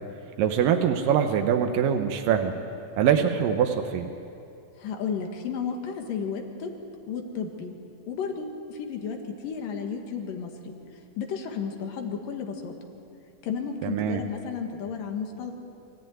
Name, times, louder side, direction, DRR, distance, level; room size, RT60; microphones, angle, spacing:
voice 1, 0.4-2.5 3.0-4.1 13.8-14.2, right 8 dB, 85° right, 5 dB, 2.6 m, -23 dB
voice 2, 4.8-6.7 7.1-7.7 8.1-9.2 9.4-10.5 11.2-12.7 13.4-15.5, left 6 dB, 85° left, 3 dB, 3.4 m, -32 dB
24.5 x 14.5 x 9.3 m, 2.6 s
omnidirectional pair, 3.8 m